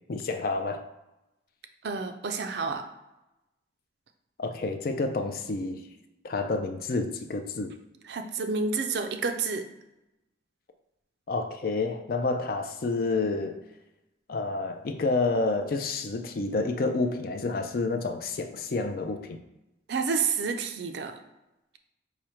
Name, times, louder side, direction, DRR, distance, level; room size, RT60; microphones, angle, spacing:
voice 1, 0.1-0.8 4.4-5.8 6.2-7.7 11.3-13.6 14.3-19.4, left 3 dB, 50° left, 6 dB, 0.4 m, -29 dB
voice 2, 1.8-2.9 8.1-9.6 19.9-21.2, right 5 dB, 60° right, 7 dB, 0.4 m, -29 dB
4.8 x 2.1 x 4.3 m, 0.95 s
head